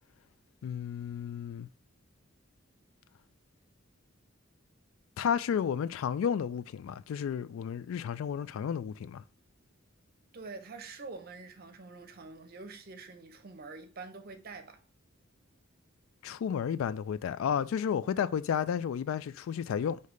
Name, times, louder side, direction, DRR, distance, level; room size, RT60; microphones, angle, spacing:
voice 1, 0.6-1.7 5.2-9.2 16.2-20.0, left 8 dB, 85° left, 0.3 m, -32 dB
voice 2, 10.3-14.8, right 4 dB, 50° right, 0.6 m, -46 dB
5.1 x 2.8 x 3.1 m
head